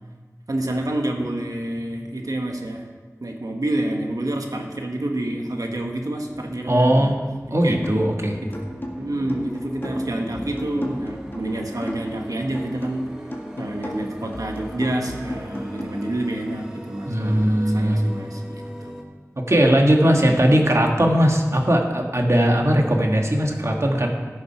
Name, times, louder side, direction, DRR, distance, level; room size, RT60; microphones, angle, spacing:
voice 1, 0.5-2.9 3.2-7.1 7.5-7.8 8.4-8.7 9.0-13.0 13.6-18.9 20.2-20.6, right 1 dB, 90° right, 2 dB, 1.5 m, -28 dB
sound 1, 5.1-19.0, equal, 10° right, 1.6 m, -39 dB
voice 2, 6.7-7.1 7.5-8.4 17.0-18.0 19.3-24.1, equal, 55° right, 1 dB, 1.7 m, -19 dB
sound 2, 7.8-8.2 8.5-12.2 12.5-15.8, left 1 dB, 35° left, 1.8 m, -35 dB
14.5 x 6.6 x 5.8 m, 1.4 s
wide cardioid pair, 45°, 6 cm